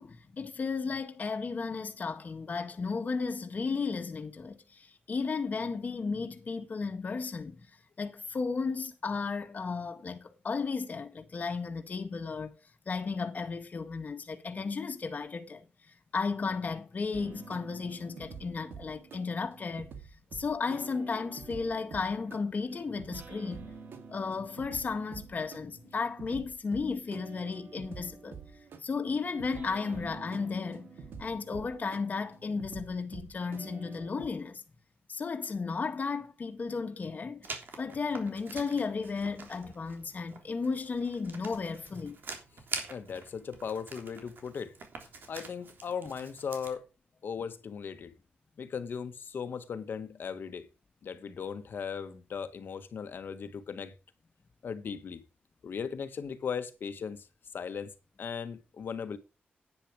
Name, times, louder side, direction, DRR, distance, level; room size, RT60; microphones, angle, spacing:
voice 1, 0.0-7.6 8.0-12.5 12.8-15.6 16.1-19.9 20.3-23.6 24.1-28.4 28.8-30.9 31.2-34.6 35.1-37.5 37.8-42.2, left 4 dB, 45° left, 1.7 m, -34 dB
sound 1, 17.1-34.3, right 5 dB, 90° right, 2.1 m, -48 dB
Writing, 37.4-46.7, right 4 dB, 65° right, 3.3 m, -45 dB
voice 2, 42.9-44.7 45.3-46.9 47.2-48.1 48.6-50.7 51.0-53.9 54.6-55.2 55.6-57.3 57.5-57.9 58.2-59.2, left 6 dB, 70° left, 1.4 m, -37 dB
10.5 x 9.6 x 4.8 m
cardioid pair, 95°, 4 cm